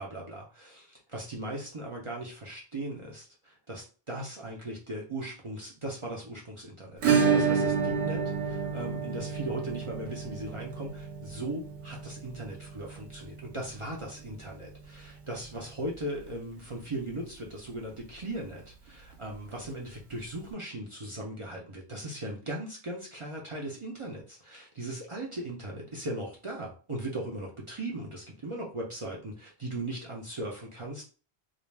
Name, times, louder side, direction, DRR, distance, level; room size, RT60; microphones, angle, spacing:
voice 1, 0.0-31.0, right 1 dB, 40° right, -3 dB, 0.5 m, -38 dB
Acoustic guitar / Strum, 7.0-15.6 15.9-16.0 16.3-16.4 16.7-16.8 18.9-19.0 20.1-20.2, right 6 dB, 75° right, 1.0 m, -30 dB
2.4 x 2.1 x 3.2 m, 0.36 s
omnidirectional pair, 1.1 m